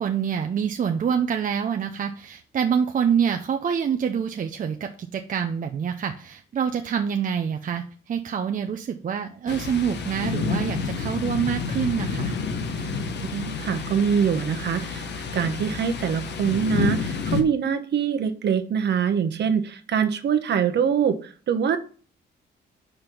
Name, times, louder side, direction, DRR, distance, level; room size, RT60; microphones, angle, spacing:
voice 1, 0.0-12.4, right 7 dB, 40° right, 5 dB, 0.6 m, -26 dB
Thunder, 9.5-17.4, left 5 dB, 60° left, 1.0 m, -29 dB
voice 2, 13.2-15.0 15.3-21.8, right 7 dB, 60° right, 9 dB, 1.0 m, -24 dB
5.1 x 4.4 x 5.9 m, 0.40 s
cardioid pair, 90°, 20 cm